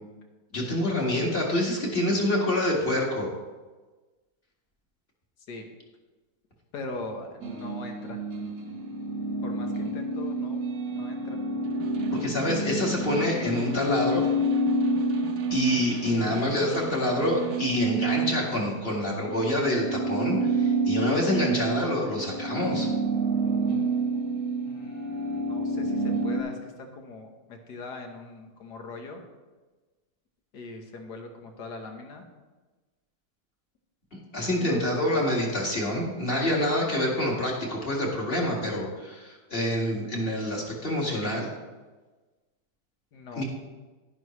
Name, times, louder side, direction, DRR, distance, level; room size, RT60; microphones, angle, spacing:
voice 1, 0.5-3.3 12.2-14.3 15.5-22.9 34.3-41.5 43.3-43.4, left 1 dB, 30° left, -2 dB, 2.2 m, -27 dB
voice 2, 6.7-8.2 9.4-10.6 10.9-11.4 24.7-29.2 30.5-32.3 34.6-34.8 43.1-43.4, left 3 dB, 70° left, 4 dB, 1.8 m, -41 dB
sound 1, 7.4-16.3 16.6-26.4, right 2 dB, 75° right, 1.9 m, -29 dB
Snare drum, 11.6-17.8, right 5 dB, 60° right, 1.2 m, -40 dB
11.5 x 11.0 x 3.2 m, 1.2 s
omnidirectional pair, 1.9 m